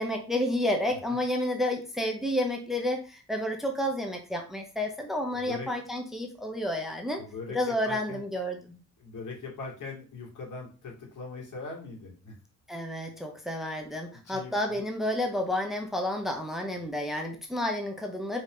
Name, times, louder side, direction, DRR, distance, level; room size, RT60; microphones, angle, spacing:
voice 1, 0.0-7.2 7.5-8.8 12.7-18.4, left 1 dB, ahead, 3 dB, 0.9 m, -30 dB
voice 2, 5.3-5.7 7.2-8.2 9.0-12.3 14.2-14.8, left 4 dB, 70° left, -2 dB, 3.0 m, -41 dB
5.0 x 4.0 x 5.3 m, 0.35 s
wide cardioid pair, 145°, 32 cm